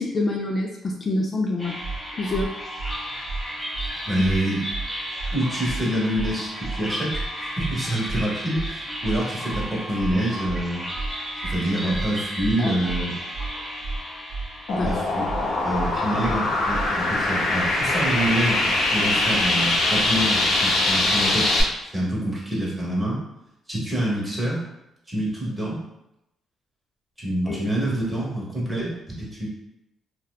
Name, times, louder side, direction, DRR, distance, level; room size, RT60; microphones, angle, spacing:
voice 1, 0.0-1.8 2.1-2.5 12.6-12.7 14.7-15.0 15.4-15.5 27.5-27.6, left 2 dB, 35° left, -1 dB, 0.3 m, -26 dB
sound 1, 1.6-16.8, equal, 10° left, 0.9 m, -34 dB
sound 2, 1.8-2.0 2.3-2.5 2.8-2.9 3.3-3.4 3.7-3.9 4.2-4.4 4.7-4.9 5.2-5.3 5.7-5.8 6.1-6.3 6.6-6.8 7.1-7.3 7.6-7.7 8.1-8.2 8.5-8.7 9.0-9.2 9.5-9.7 10.0-10.1 10.5-10.6 10.9-11.1 11.4-11.6 11.9-12.1 12.4-12.5 12.9-13.0 13.3-13.5 13.8-14.0 14.3-14.5 14.8-14.9 15.3-15.4 15.7-15.9 16.2-16.4 16.7-16.9, right 3 dB, 60° right, 0.4 m, -31 dB
voice 2, 4.0-4.6 5.3-7.2 7.6-10.9 11.4-13.1 14.8-15.1 15.6-23.2 23.7-24.6 25.1-25.8 27.2-28.9 29.2-29.5, right 1 dB, 15° right, -5 dB, 1.0 m, -26 dB
sound 3, 14.7-21.6, left 2 dB, 80° left, 0.6 m, -22 dB
2.6 x 2.2 x 2.3 m, 0.87 s
cardioid pair, 90°, 0 cm